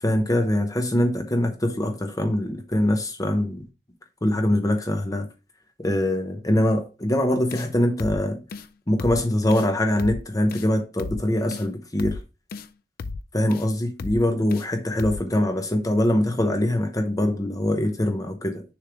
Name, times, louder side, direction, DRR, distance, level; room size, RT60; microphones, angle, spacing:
voice 1, 0.0-3.6 4.2-5.3 5.8-8.4 8.9-12.2 13.3-18.6, left 1 dB, 20° left, 0.8 m, -23 dB
sound 1, 7.5-7.7 8.0-8.2 8.5-8.7 9.0-9.2 9.5-9.7 10.0-10.2 10.5-10.7 11.0-11.2 11.5-11.7 12.0-12.2 12.5-12.7 13.0-13.2 13.5-13.7 14.0-14.2 14.5-14.7 15.0-15.2, left 3 dB, 50° left, 0.4 m, -33 dB
6.7 x 3.2 x 4.9 m
head